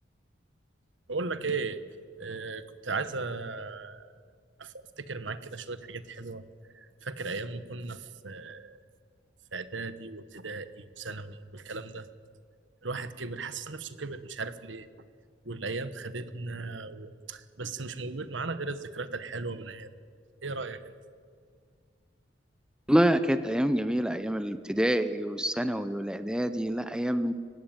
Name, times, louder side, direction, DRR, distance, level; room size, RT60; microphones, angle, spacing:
voice 1, 1.1-1.8 2.2-4.1 4.6-6.4 6.7-8.8 9.5-12.1 12.8-14.9 15.4-19.9 20.4-20.9, right 3 dB, 70° right, 12 dB, 1.3 m, -36 dB
voice 2, 22.9-27.3, equal, 5° right, 11 dB, 0.8 m, -27 dB
29.5 x 17.0 x 9.0 m, 2.1 s
head